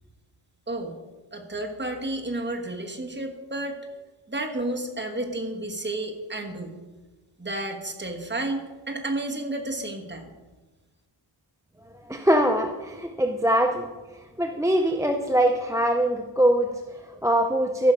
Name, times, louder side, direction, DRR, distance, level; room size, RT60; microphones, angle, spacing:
voice 1, 0.7-1.0 1.3-3.8 4.3-6.8 7.4-10.3, right 2 dB, 20° right, 2 dB, 1.4 m, -31 dB
voice 2, 12.1-13.9 14.4-17.9, right 1 dB, 5° right, 3 dB, 0.5 m, -23 dB
14.5 x 5.7 x 5.1 m, 1.2 s
wide cardioid pair, 120°, 50 cm